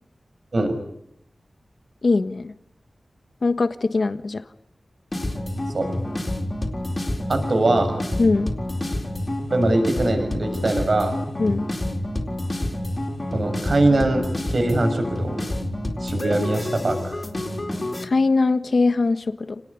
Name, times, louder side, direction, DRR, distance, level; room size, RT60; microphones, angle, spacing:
voice 1, 2.0-2.5 3.4-4.4 8.2-8.5 11.4-11.6 18.0-19.6, left 3 dB, 60° left, 10 dB, 1.4 m, -21 dB
sound 1, 5.1-18.0, left 1 dB, 30° left, 4.4 m, -28 dB
voice 2, 7.3-7.9 9.5-11.2 13.3-15.4 16.0-17.2, right 2 dB, 60° right, 7 dB, 6.4 m, -22 dB
30.0 x 19.5 x 9.9 m, 0.74 s
wide cardioid pair, 100°, 0 cm